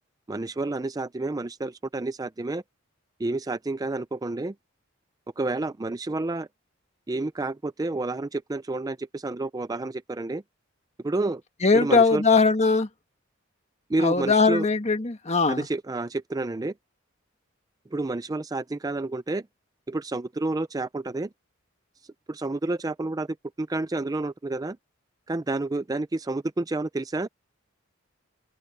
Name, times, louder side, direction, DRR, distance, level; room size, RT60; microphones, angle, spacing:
voice 1, 0.3-2.6 3.2-4.5 5.4-6.5 7.1-10.4 11.0-11.4 11.7-12.2 13.9-14.7 15.5-16.7 17.9-19.4 19.9-21.3 22.3-23.3 23.6-24.8 25.3-27.3, right 2 dB, 20° right, 0.4 m, -29 dB
voice 2, 11.6-12.9 14.0-15.7, left 4 dB, 35° left, 1.5 m, -20 dB
head